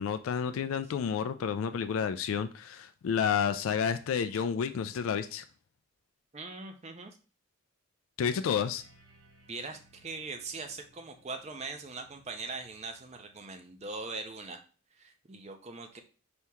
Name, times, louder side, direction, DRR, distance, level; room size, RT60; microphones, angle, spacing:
voice 1, 0.0-5.4 8.2-8.8, left 7 dB, 75° left, 0.3 m, -30 dB
voice 2, 6.3-7.2 9.5-14.6 15.0-16.0, right 3 dB, 30° right, 0.5 m, -41 dB
sound 1, 8.8-14.4, right 2 dB, 55° right, 1.4 m, -64 dB
4.3 x 2.9 x 3.5 m
head